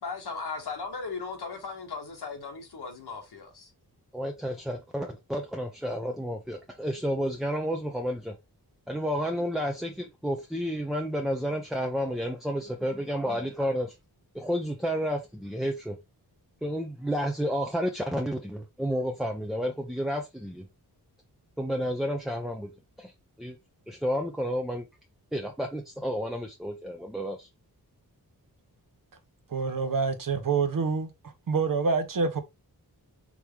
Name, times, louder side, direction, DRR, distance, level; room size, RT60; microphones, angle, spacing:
voice 1, 0.0-3.7, left 4 dB, 85° left, 1.7 m, -37 dB
voice 2, 4.1-8.4 8.9-13.9 14.3-16.0 16.6-20.7 21.6-22.7 23.0-23.1 23.4-23.6 23.9-24.9 25.3-27.5, equal, ahead, 0.5 m, -31 dB
voice 3, 29.5-31.1 31.5-32.4, right 4 dB, 55° right, 0.8 m, -26 dB
4.7 x 3.5 x 3.3 m
wide cardioid pair, 115°, 38 cm